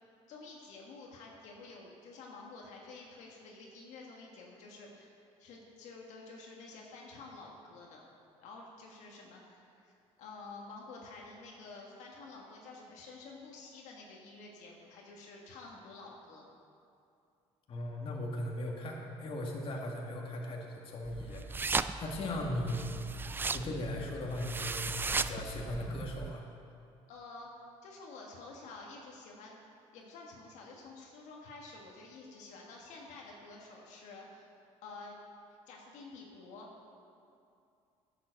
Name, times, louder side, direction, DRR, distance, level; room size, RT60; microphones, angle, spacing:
voice 1, 0.3-5.1 5.4-8.0 8.4-9.9 10.2-16.4 27.1-27.5 27.8-29.6 29.9-34.5 34.8-35.2 35.7-36.7, left 3 dB, 75° left, -1 dB, 1.7 m, -50 dB
voice 2, 17.7-21.5 22.0-22.9 23.5-26.5, left 1 dB, 45° left, -1 dB, 1.8 m, -38 dB
sound 1, 21.0-26.3, right 4 dB, 15° right, 0.3 m, -37 dB
10.5 x 7.7 x 6.4 m, 2.5 s
cardioid pair, 110°, 12 cm